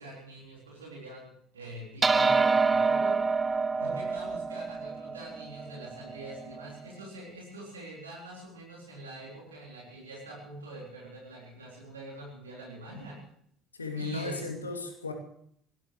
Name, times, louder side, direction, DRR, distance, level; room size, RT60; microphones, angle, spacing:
voice 1, 0.0-3.2 3.8-13.2 14.0-14.5, right 1 dB, 85° right, -3 dB, 3.9 m, -44 dB
sound 1, 2.0-6.7, right 4 dB, 25° right, 0.9 m, -27 dB
voice 2, 13.8-15.1, left 3 dB, 85° left, 4 dB, 2.6 m, -36 dB
22.5 x 18.0 x 3.2 m, 0.67 s
figure-of-eight pair, 60°, 0 cm